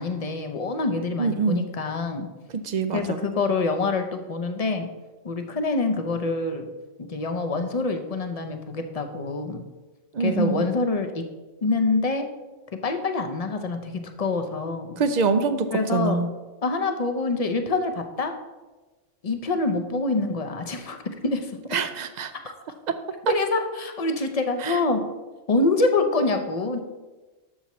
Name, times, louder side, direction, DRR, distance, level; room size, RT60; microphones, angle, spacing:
voice 1, 0.0-2.3 2.9-4.9 5.2-6.7 7.0-9.7 10.2-11.2 11.6-12.3 12.7-15.0 15.7-16.2 16.6-18.4 19.2-21.0 21.2-21.8 23.3-25.1 25.5-26.8, left 3 dB, 35° left, 6 dB, 0.7 m, -26 dB
voice 2, 1.2-1.7 2.6-3.2 10.1-10.6 15.0-16.3 21.7-22.3 24.6-24.8, right 4 dB, 55° right, 10 dB, 0.5 m, -24 dB
11.0 x 7.0 x 3.1 m, 1.2 s
omnidirectional pair, 1.3 m